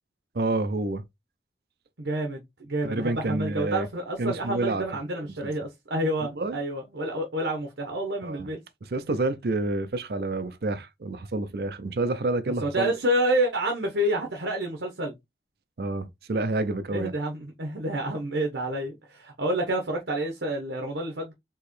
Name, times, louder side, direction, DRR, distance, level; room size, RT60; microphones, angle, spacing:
voice 1, 0.3-1.0 2.8-3.9 4.2-4.8 5.4-5.5 6.4-6.6 8.2-8.5 8.9-12.9 15.8-17.1, right 2 dB, 55° right, 0.5 m, -28 dB
voice 2, 2.0-8.6 12.4-15.1 16.9-21.3, right 1 dB, 85° right, 1.1 m, -29 dB
4.6 x 3.0 x 3.1 m
head